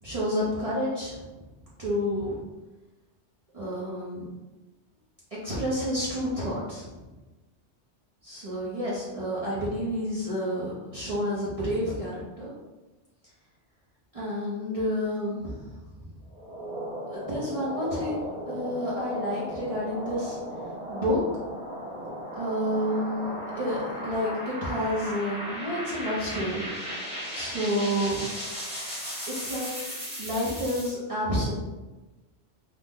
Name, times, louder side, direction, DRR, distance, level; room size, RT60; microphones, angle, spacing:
voice 1, 0.0-1.3 1.8-2.4 3.5-4.2 5.4-7.0 8.2-12.5 14.1-15.7 16.0-16.1 17.1-20.4 20.9-21.2 22.3-26.7 27.3-28.2 29.3-29.7 30.2-31.5, equal, 40° right, -8 dB, 0.6 m, -30 dB
sound 1, 16.3-30.9, equal, 5° right, 0.9 m, -36 dB
2.8 x 2.1 x 3.5 m, 1.1 s
omnidirectional pair, 1.2 m